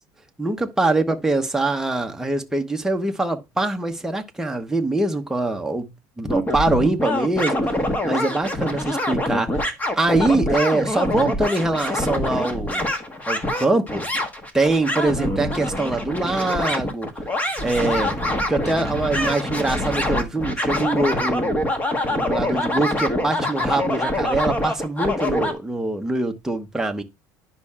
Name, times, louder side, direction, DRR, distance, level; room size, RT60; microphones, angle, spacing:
voice 1, 0.4-5.9 6.2-7.6 8.0-9.7 9.9-12.9 13.3-14.1 14.5-17.1 17.6-18.2 18.5-21.7 22.1-27.0, right 2 dB, 5° right, 1.0 m, -23 dB
sound 1, 6.3-25.5, left 1 dB, 15° left, 1.3 m, -25 dB
10.0 x 5.5 x 2.4 m
supercardioid pair, 115°, 10 cm